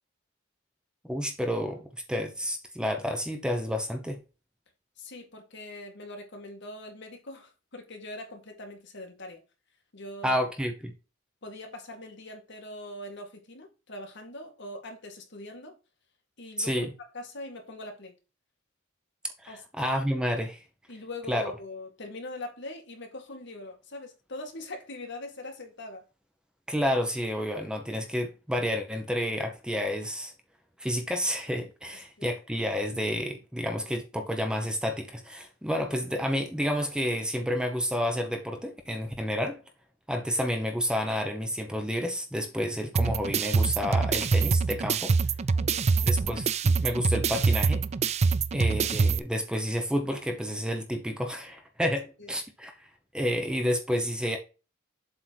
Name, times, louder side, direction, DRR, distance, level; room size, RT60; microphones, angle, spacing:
voice 1, 1.1-4.2 10.2-10.9 16.6-16.9 19.4-19.5 19.8-20.6 21.3-21.4 26.7-30.3 30.8-39.6 40.1-45.1 46.1-47.8 48.5-52.7 53.1-54.4, equal, 5° right, 1.0 m, -30 dB
voice 2, 5.0-9.4 9.9-10.4 11.4-15.8 16.4-18.1 19.5-19.6 20.9-26.1 31.9-32.3 45.5-46.3 52.2-52.3, left 2 dB, 60° left, 2.0 m, -42 dB
sound 1, 43.0-49.2, right 4 dB, 35° right, 0.4 m, -25 dB
7.7 x 3.9 x 4.6 m
head